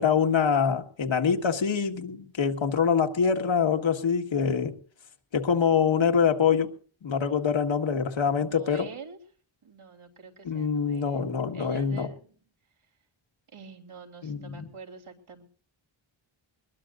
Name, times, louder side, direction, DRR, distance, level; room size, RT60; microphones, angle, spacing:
voice 1, 0.0-4.8 5.3-6.7 7.0-8.9 10.5-12.1 14.2-14.6, left 6 dB, 65° left, 1.7 m, -25 dB
voice 2, 8.4-9.2 9.6-12.4 12.8-12.9 13.5-15.4, right 5 dB, 75° right, 3.7 m, -46 dB
21.5 x 21.0 x 2.5 m
wide cardioid pair, 105°, 50 cm